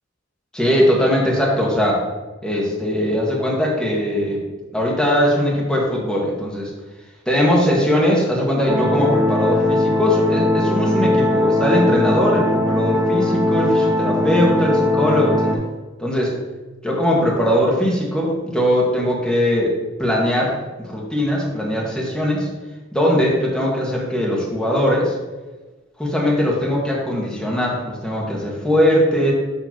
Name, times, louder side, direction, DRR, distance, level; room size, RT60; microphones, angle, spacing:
voice 1, 0.5-2.0 2.4-4.4 4.7-6.7 7.3-15.5 16.0-16.4 16.8-19.7 20.0-22.5 22.9-25.1 26.0-29.3, equal, 5° left, -4 dB, 1.4 m, -20 dB
sound 1, 8.7-15.6, left 1 dB, 15° right, 0.9 m, -19 dB
7.4 x 3.2 x 5.9 m, 1.3 s
head